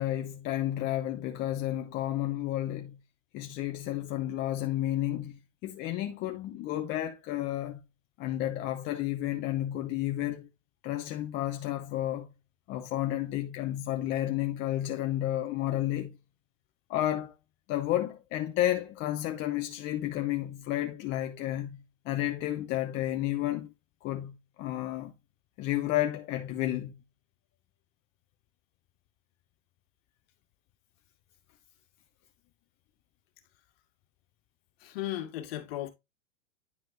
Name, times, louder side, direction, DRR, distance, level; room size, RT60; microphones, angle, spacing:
voice 1, 0.0-3.0 3.3-7.8 8.2-10.5 10.8-12.3 12.7-16.1 16.9-17.3 17.7-23.7 24.0-25.1 25.6-26.9, left 13 dB, 30° left, 0.7 m, -31 dB
voice 2, 34.8-35.9, left 13 dB, 55° left, 1.8 m, -35 dB
9.7 x 4.5 x 2.6 m
hypercardioid pair, 110°, 37 cm